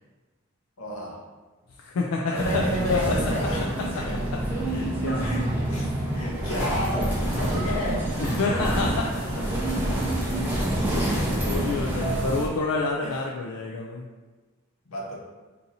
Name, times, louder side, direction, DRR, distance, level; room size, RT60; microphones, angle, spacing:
voice 1, 0.8-1.2 2.2-3.7 3.9-4.2 5.2-8.1 13.0-13.2 14.9-15.2, left 1 dB, 75° left, -3 dB, 0.9 m, -31 dB
voice 2, 1.8-3.2 3.8-4.0 4.7-5.3 8.2-9.4 11.0-14.1, left 3 dB, 90° left, -1 dB, 0.4 m, -29 dB
sound 1, 2.3-12.5, right 1 dB, 10° right, 0.5 m, -27 dB
sound 2, 3.5-9.1, right 2 dB, 70° right, 0.5 m, -44 dB
2.8 x 2.6 x 3.9 m, 1.3 s
head